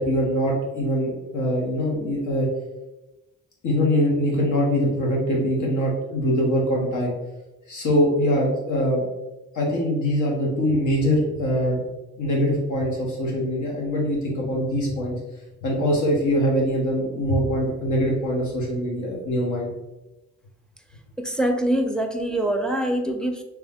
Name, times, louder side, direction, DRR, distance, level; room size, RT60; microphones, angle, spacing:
voice 1, 0.0-2.5 3.6-7.1 7.7-9.0 9.5-11.8 12.2-15.2 15.6-19.7, equal, 75° left, -3 dB, 1.5 m, -23 dB
voice 2, 21.2-23.4, right 1 dB, ahead, 4 dB, 0.5 m, -24 dB
3.3 x 3.1 x 3.5 m, 1.0 s
cardioid pair, 90°, 30 cm